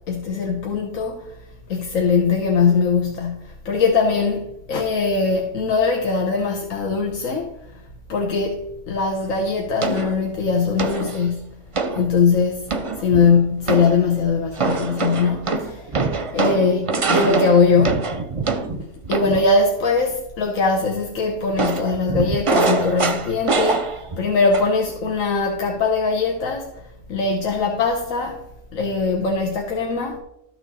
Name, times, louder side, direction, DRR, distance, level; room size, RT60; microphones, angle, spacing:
voice 1, 0.1-1.4 1.7-7.8 8.1-11.6 12.0-12.7 13.0-16.0 16.3-18.2 18.8-30.2, left 4 dB, 85° left, 1.4 m, -21 dB
sound 1, 9.8-10.2 10.8-11.2 11.8-12.0 12.7-13.3 13.7-14.0 14.6-19.5 21.6-24.2 24.5-24.9, right 3 dB, 35° right, 0.5 m, -24 dB
12.5 x 6.3 x 4.2 m
omnidirectional pair, 1.3 m